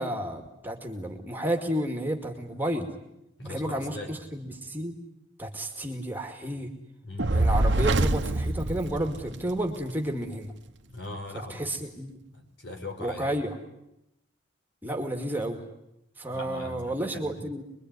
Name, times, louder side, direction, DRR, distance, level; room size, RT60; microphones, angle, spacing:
voice 1, 0.0-2.9 3.5-5.0 5.4-6.7 7.3-10.5 11.5-12.2 13.0-13.6 14.8-15.6 16.2-17.6, right 1 dB, 10° right, 4 dB, 2.3 m, -31 dB
voice 2, 3.4-4.1 7.0-7.4 10.9-11.7 12.3-13.3 16.3-17.5, left 1 dB, 60° left, 4 dB, 4.9 m, -40 dB
Fire, 7.2-9.6, right 2 dB, 60° right, 1.1 m, -25 dB
26.0 x 22.5 x 9.7 m, 0.85 s
head